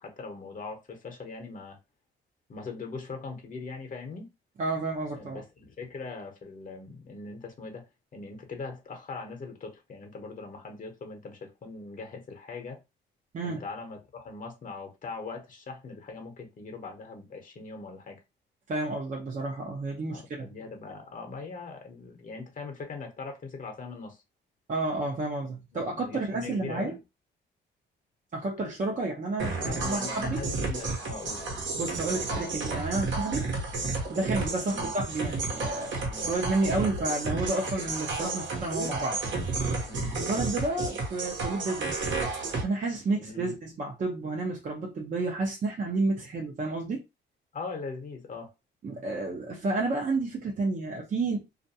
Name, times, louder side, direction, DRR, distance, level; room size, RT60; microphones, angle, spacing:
voice 1, 0.0-1.8 2.5-4.3 5.1-7.8 8.1-12.8 13.4-18.2 20.1-24.2 25.7-27.0 29.6-31.6 34.7-34.9 36.1-36.3 39.8-40.2 43.1-43.5 47.5-48.5, left 4 dB, 40° left, 0.9 m, -41 dB
voice 2, 4.6-5.4 13.3-13.6 18.7-20.5 24.7-27.0 28.3-30.4 31.7-33.5 34.1-39.2 40.2-42.1 42.6-47.0 48.8-51.4, right 2 dB, 40° right, 0.7 m, -31 dB
sound 1, 29.4-42.6, right 3 dB, 70° right, 1.0 m, -32 dB
2.4 x 2.2 x 2.7 m
cardioid pair, 90°, 20 cm